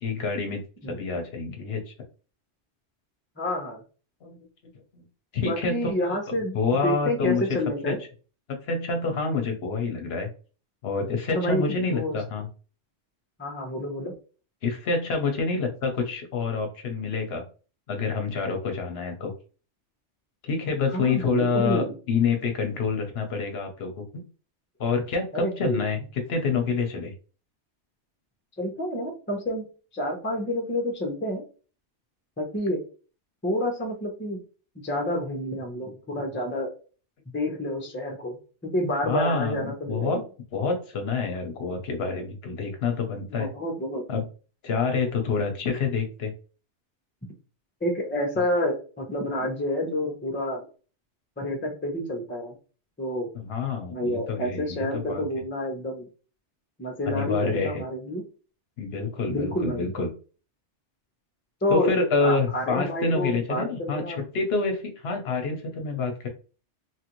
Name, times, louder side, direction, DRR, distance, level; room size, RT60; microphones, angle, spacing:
voice 1, 0.0-0.6 0.9-1.8 4.2-4.4 4.9-5.0 5.3-5.9 6.5-7.4 7.9-8.0 8.5-10.3 10.8-12.5 14.6-17.4 17.9-19.3 20.4-24.2 24.8-26.0 26.3-27.1 39.0-40.2 40.5-43.5 44.1-44.2 44.6-46.3 53.3-55.2 57.1-57.8 58.8-60.1 61.7-66.3, left 4 dB, 65° left, 4 dB, 0.9 m, -27 dB
voice 2, 3.4-3.8 5.4-6.6 6.8-8.0 11.3-12.2 13.4-14.1 20.9-21.9 25.3-25.8 28.6-29.7 29.9-31.4 32.4-32.8 33.4-34.4 34.8-36.7 37.3-38.4 38.6-40.2 43.4-44.0 47.8-50.6 51.4-52.5 53.0-53.3 53.9-56.1 56.8-58.2 59.3-59.9 61.6-64.2, left 1 dB, 15° left, 0 dB, 0.6 m, -29 dB
2.9 x 2.5 x 2.9 m, 0.37 s
omnidirectional pair, 1.2 m